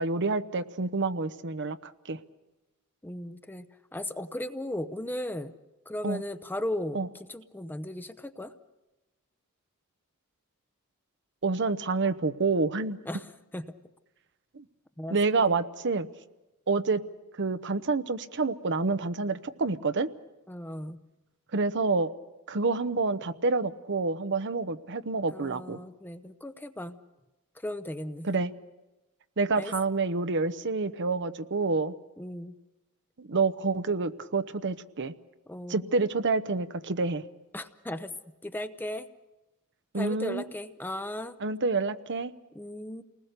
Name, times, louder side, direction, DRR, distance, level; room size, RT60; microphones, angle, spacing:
voice 1, 0.0-2.2 6.0-6.2 6.9-7.1 11.4-13.0 14.5-14.6 15.1-16.1 16.7-17.0 17.4-20.1 21.5-22.1 22.5-25.8 28.2-28.5 29.4-31.9 33.2-35.1 35.7-37.2 39.9-40.4 41.4-42.3, right 3 dB, 55° right, 11 dB, 0.9 m, -28 dB
voice 2, 3.0-3.7 3.9-5.5 5.9-8.5 13.0-13.7 15.0-15.6 20.5-21.0 25.3-27.0 27.6-28.3 29.6-29.7 32.2-32.5 35.5-35.9 37.5-38.1 38.4-39.1 39.9-41.4 42.5-43.0, left 1 dB, 10° left, 10 dB, 0.7 m, -36 dB
29.0 x 20.0 x 6.7 m, 1.0 s
head